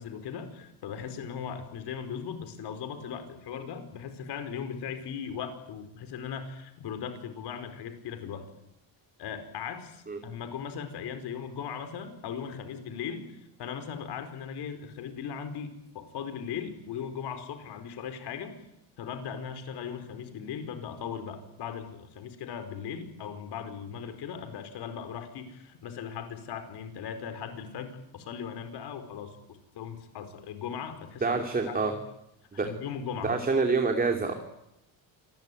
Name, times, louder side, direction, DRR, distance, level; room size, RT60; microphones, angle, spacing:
voice 1, 0.0-8.5 9.2-13.3 13.6-18.6 19.0-29.4 29.7-31.4 31.6-31.9 32.5-33.4, left 7 dB, 55° left, 9 dB, 4.9 m, -38 dB
voice 2, 31.2-31.9 32.5-32.7 33.2-34.3, right 4 dB, 20° right, 4 dB, 2.9 m, -26 dB
27.0 x 21.5 x 9.4 m, 0.85 s
cardioid pair, 145°, 47 cm